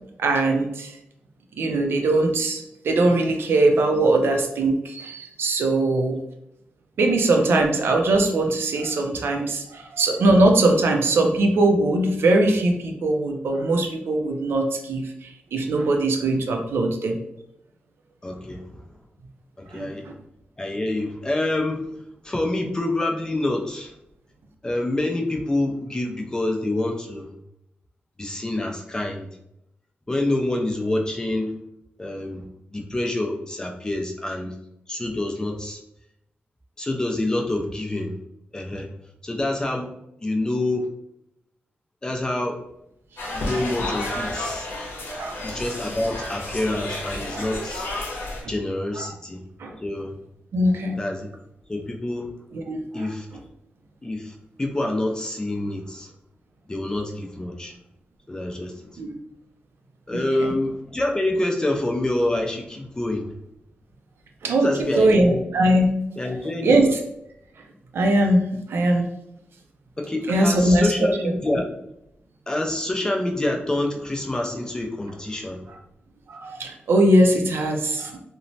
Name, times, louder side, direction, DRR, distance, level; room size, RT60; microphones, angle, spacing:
voice 1, 0.2-1.0 1.5-6.2 7.0-17.2 19.7-20.1 45.2-45.4 47.3-47.5 48.4-48.5 49.0-49.1 49.6-49.8 50.5-51.0 52.5-53.1 59.0-59.2 60.1-60.2 64.4-65.9 66.6-66.9 67.9-69.1 70.3-70.9 76.3-78.2, right 2 dB, 80° right, 4 dB, 0.4 m, -21 dB
voice 2, 18.2-18.8 19.6-20.1 20.6-22.0 22.2-23.9 24.6-27.3 28.2-29.3 30.1-31.5 32.0-32.5 32.7-34.5 34.9-35.8 36.8-38.2 38.5-38.9 39.2-39.9 40.2-40.9 42.0-42.6 43.3-44.7 45.4-47.9 48.5-49.4 49.8-50.1 51.0-51.3 51.7-52.3 52.9-53.3 54.0-56.1 56.7-57.8 58.3-59.0 60.1-63.3 64.6-65.4 66.2-66.8 70.0-71.7 72.5-75.7, left 1 dB, 20° left, 2 dB, 0.4 m, -27 dB
sound 1, 43.2-48.4, left 2 dB, 80° left, 0.8 m, -31 dB
3.0 x 2.0 x 2.6 m, 0.81 s
wide cardioid pair, 130°, 4 cm